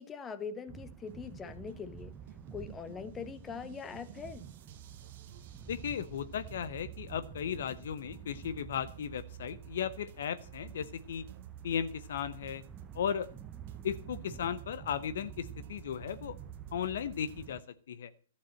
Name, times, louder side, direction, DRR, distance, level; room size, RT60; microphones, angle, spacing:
voice 1, 0.0-2.2 2.5-4.4, left 6 dB, 20° left, 1.1 m, -42 dB
sound 1, 0.7-17.6, right 8 dB, 20° right, 0.7 m, -51 dB
sound 2, 0.9-17.5, right 11 dB, 55° right, 1.3 m, -51 dB
voice 2, 5.7-11.2 11.6-12.6 12.9-13.3 13.8-16.4 16.7-17.6 17.9-18.1, left 8 dB, 65° left, 0.8 m, -36 dB
12.0 x 7.3 x 7.5 m
hypercardioid pair, 125°, 0 cm